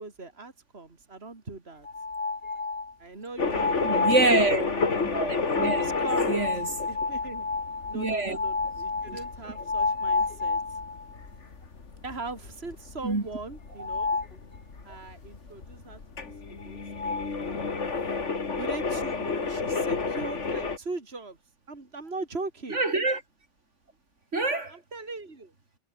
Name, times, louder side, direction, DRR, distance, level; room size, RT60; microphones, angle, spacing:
voice 1, 0.0-1.9 3.0-4.9 5.7-6.5 6.9-7.5 7.9-10.8 12.0-14.2 14.8-18.0 18.6-21.4 21.7-22.8 24.7-25.5, right 3 dB, 60° right, 3.3 m, -40 dB
sound 1, 1.8-2.9 3.4-4.3 5.5-11.2 11.6-11.7 12.1-12.2 13.8-14.4 16.6-16.7 16.9-17.3, left 3 dB, 50° left, 2.5 m, -30 dB
sound 2, 3.4-20.8, left 4 dB, 80° left, 2.5 m, -31 dB
voice 2, 3.8-4.7 5.1-5.9 6.3-6.7 7.9-8.4 13.0-13.2 22.7-23.2 24.3-24.8, right 2 dB, 80° right, 4.0 m, -25 dB
omnidirectional pair, 1.2 m